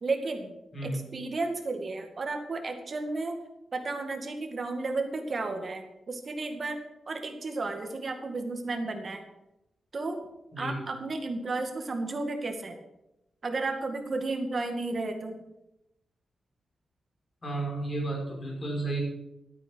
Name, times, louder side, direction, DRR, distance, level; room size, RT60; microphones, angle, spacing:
voice 1, 0.0-0.5 0.8-3.4 3.7-6.8 7.1-9.2 9.9-10.2 10.6-12.8 13.4-15.4, right 3 dB, 40° right, 5 dB, 2.0 m, -33 dB
voice 2, 17.4-19.0, right 2 dB, 35° left, -2 dB, 5.6 m, -32 dB
13.0 x 9.1 x 6.3 m, 0.90 s
wide cardioid pair, 125°, 0 cm